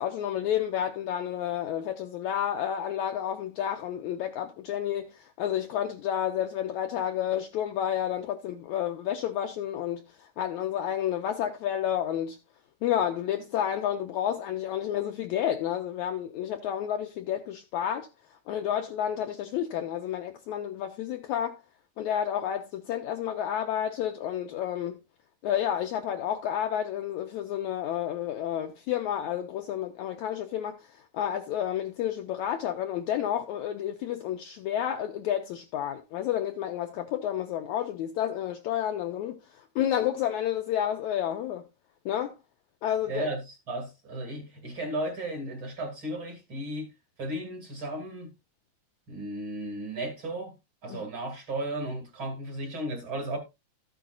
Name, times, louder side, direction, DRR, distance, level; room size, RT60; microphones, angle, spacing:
voice 1, 0.0-12.4 12.8-18.1 18.5-21.6 22.0-25.0 25.4-41.6 42.1-42.4 42.8-43.3 50.9-51.0, left 10 dB, 80° left, 1.7 m, -30 dB
voice 2, 43.1-46.9 47.2-48.3 49.1-50.5 50.8-53.4, right 1 dB, 40° right, 2.6 m, -35 dB
13.5 x 9.1 x 2.4 m
omnidirectional pair, 4.0 m